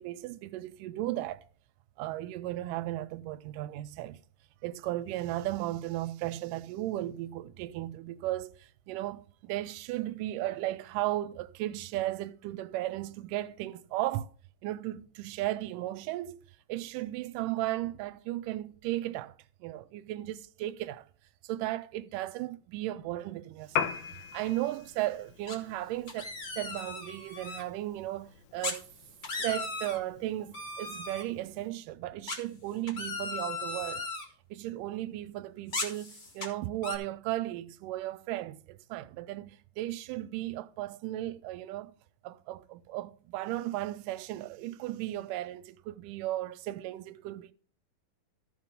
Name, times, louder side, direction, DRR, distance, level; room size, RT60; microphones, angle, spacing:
voice 1, 0.0-1.4 2.0-4.2 4.6-14.4 14.6-16.4 16.7-19.4 19.6-21.1 21.4-23.9 24.3-28.9 29.4-34.1 34.5-41.9 42.2-47.5, right 15 dB, 80° right, 2.1 m, -35 dB
Piano, 23.7-31.7, left 8 dB, 70° left, 1.9 m, -41 dB
sound 1, 25.5-25.8 26.1-27.6 28.6-28.8 29.1-30.0 30.5-31.2 32.3-34.2 35.7-36.5 36.8-37.0, left 3 dB, 35° left, 1.8 m, -37 dB
14.0 x 4.9 x 5.3 m
omnidirectional pair, 4.1 m